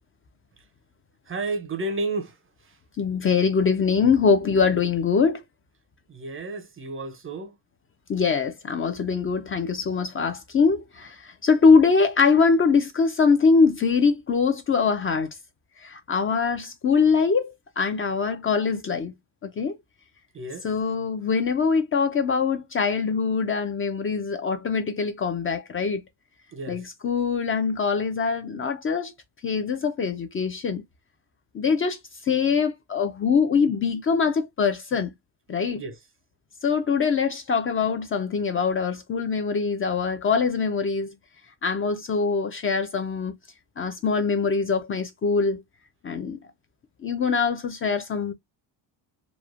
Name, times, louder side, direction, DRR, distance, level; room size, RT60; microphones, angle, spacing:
voice 1, 1.3-2.3 6.1-7.5 20.3-20.7 26.5-26.8 35.8-35.9, right 2 dB, 30° right, 0.5 m, -31 dB
voice 2, 3.0-5.4 8.1-15.3 15.8-19.1 19.4-19.8 20.6-26.0 26.7-29.1 29.4-30.8 31.5-32.0 32.3-35.1 35.5-35.8 36.6-41.1 41.6-43.3 43.8-45.6 46.0-46.4 47.0-48.3, left 5 dB, 30° left, 0.4 m, -23 dB
3.0 x 2.1 x 2.4 m
cardioid pair, 105°, 43 cm